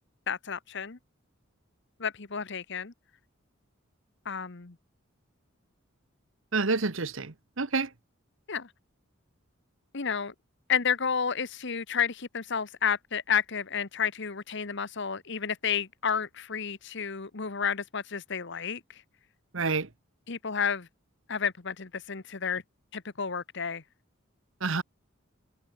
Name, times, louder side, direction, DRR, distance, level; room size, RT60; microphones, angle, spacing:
voice 1, 0.3-1.0 2.0-2.9 4.2-4.8 8.5-8.7 9.9-10.3 10.7-19.0 20.3-20.9 21.3-22.6 22.9-23.8, left 7 dB, 55° left, 1.2 m, -31 dB
voice 2, 6.5-7.9 19.5-19.9 24.6-24.8, right 4 dB, 65° right, 1.2 m, -28 dB
head